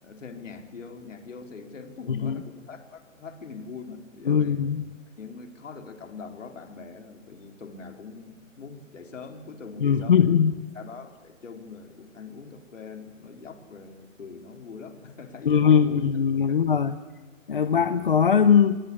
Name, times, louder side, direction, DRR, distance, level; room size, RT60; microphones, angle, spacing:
voice 1, 0.0-4.6 5.2-10.3 10.7-16.6, left 5 dB, 70° left, 5 dB, 4.2 m, -42 dB
voice 2, 4.3-4.8 9.8-10.5 15.5-17.0 17.5-18.8, left 7 dB, 40° left, 12 dB, 0.9 m, -20 dB
27.0 x 19.0 x 9.9 m, 1.2 s
hypercardioid pair, 175°, 40 cm